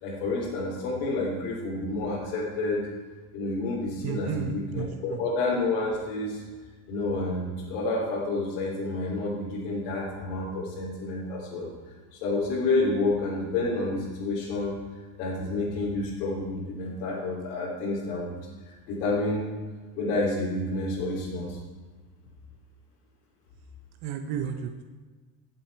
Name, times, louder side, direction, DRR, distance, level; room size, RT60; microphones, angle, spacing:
voice 1, 0.0-2.9 3.3-6.4 6.9-11.7 12.1-14.8 15.2-18.3 18.6-19.5 20.0-21.6, left 2 dB, 75° left, -7 dB, 3.2 m, -29 dB
voice 2, 4.0-5.2 24.0-24.8, right 8 dB, 50° right, 6 dB, 0.9 m, -33 dB
17.5 x 7.9 x 4.6 m, 1.4 s
supercardioid pair, 135°, 47 cm